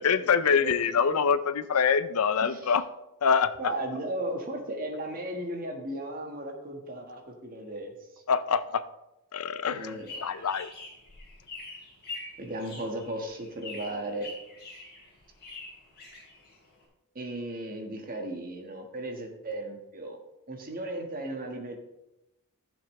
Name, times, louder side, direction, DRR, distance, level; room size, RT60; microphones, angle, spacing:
voice 1, 0.0-2.8 3.2-3.5 8.3-8.8 9.3-9.9 10.2-10.7, left 6 dB, 80° left, 13 dB, 0.5 m, -25 dB
voice 2, 0.6-1.1 2.4-2.7 3.6-8.2 9.7-10.5 12.4-14.3 17.1-20.2 20.5-21.8, right 1 dB, 40° right, 2 dB, 1.6 m, -36 dB
sound 1, 9.8-16.8, left 3 dB, 45° left, 3.4 m, -45 dB
13.5 x 7.1 x 3.2 m, 0.92 s
head